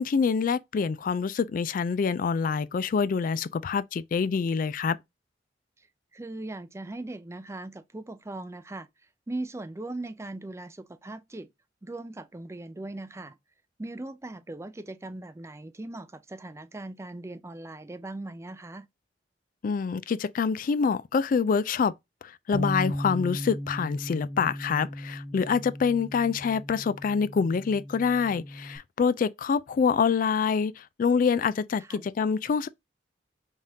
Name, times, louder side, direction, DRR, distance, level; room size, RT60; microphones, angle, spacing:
voice 1, 0.0-5.0 19.6-21.9 22.2-32.7, left 5 dB, 50° left, 0.3 m, -26 dB
voice 2, 5.8-8.9 9.3-11.5 11.8-13.4 13.8-18.9 31.8-32.1, right 2 dB, 15° right, 0.4 m, -39 dB
Bass guitar, 22.5-28.8, equal, 85° right, 1.7 m, -36 dB
5.4 x 3.6 x 2.7 m
head